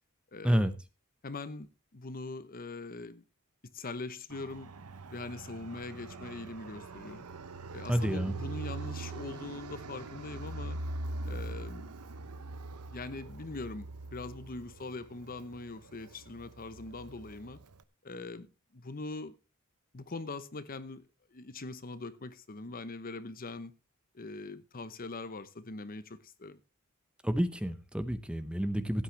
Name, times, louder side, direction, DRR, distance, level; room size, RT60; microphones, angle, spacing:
voice 1, 0.3-0.7 1.2-1.7 1.9-3.2 3.7-4.7 5.1-7.3 7.7-10.8 11.2-11.9 12.9-17.6 18.0-18.5 18.7-19.3 19.9-21.0 21.3-23.7 24.1-26.6, left 3 dB, 40° left, 0.9 m, -42 dB
Fixed-wing aircraft airplane, 4.3-17.8, right 2 dB, 85° right, 0.9 m, -42 dB
voice 2, 7.9-8.3 27.2-29.0, equal, 5° right, 0.8 m, -29 dB
16.5 x 8.9 x 3.4 m
head